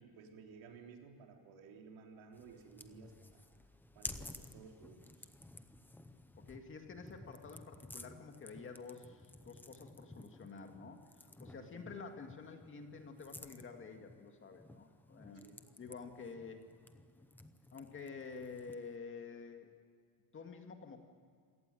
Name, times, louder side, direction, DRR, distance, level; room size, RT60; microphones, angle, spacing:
voice 1, 0.0-3.5 3.9-5.3 11.6-11.9 15.4-15.6, right 5 dB, 75° right, 2 dB, 3.8 m, -56 dB
sound 1, 2.3-19.0, left 1 dB, 5° left, 0.6 m, -54 dB
voice 2, 6.4-15.4 15.8-16.6 17.7-19.7 20.3-21.0, left 5 dB, 25° left, 4 dB, 2.0 m, -49 dB
27.5 x 18.0 x 9.1 m, 2.1 s
cardioid pair, 180°, 47 cm